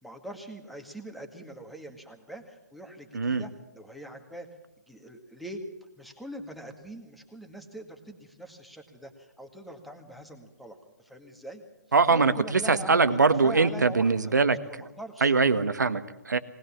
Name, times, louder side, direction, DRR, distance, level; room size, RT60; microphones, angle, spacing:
voice 1, 0.0-4.5 4.9-5.6 6.0-11.6 12.1-15.3, right 1 dB, ahead, 3 dB, 1.9 m, -43 dB
voice 2, 11.9-14.6 15.2-16.4, right 4 dB, 75° right, 12 dB, 1.5 m, -22 dB
20.0 x 19.5 x 7.2 m, 0.97 s
figure-of-eight pair, 140°, 10 cm